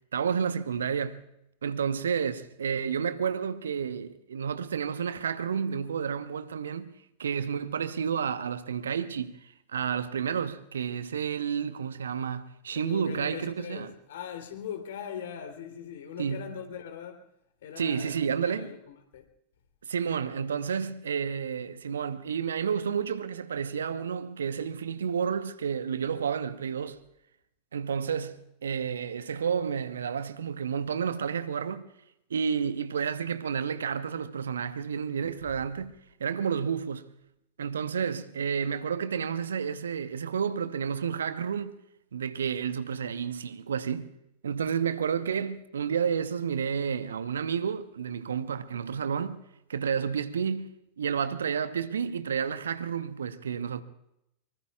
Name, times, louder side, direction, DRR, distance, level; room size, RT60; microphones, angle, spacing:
voice 1, 0.1-1.3 1.6-6.9 7.2-9.4 9.7-13.9 16.2-16.6 17.8-18.7 19.8-27.0 27.7-31.9 32.3-35.9 36.2-37.1 37.6-41.8 42.1-44.2 44.4-49.4 49.7-53.8, right 7 dB, 70° right, 1.0 m, -30 dB
voice 2, 12.7-17.3 17.6-19.2, left 8 dB, 60° left, 3.2 m, -40 dB
25.0 x 24.0 x 2.4 m
figure-of-eight pair, 90°, 0 cm